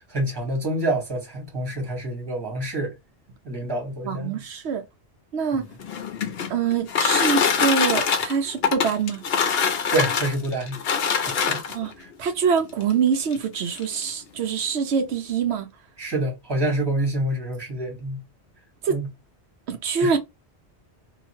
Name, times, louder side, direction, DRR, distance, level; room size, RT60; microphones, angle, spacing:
voice 1, 0.1-2.9 3.4-4.4 9.9-10.8 11.2-11.6 16.0-18.2 18.9-19.1 20.0-20.2, right 1 dB, 25° right, 1.3 m, -27 dB
voice 2, 4.0-4.8 5.3-5.7 6.5-9.2 11.7-11.9 12.2-15.7 18.8-19.0 19.7-20.2, right 6 dB, 85° right, 0.9 m, -24 dB
sound 1, 5.7-11.9 12.8-12.9 13.3-13.4 13.7-14.1, left 6 dB, 65° left, 0.9 m, -24 dB
2.8 x 2.4 x 2.7 m
omnidirectional pair, 1.1 m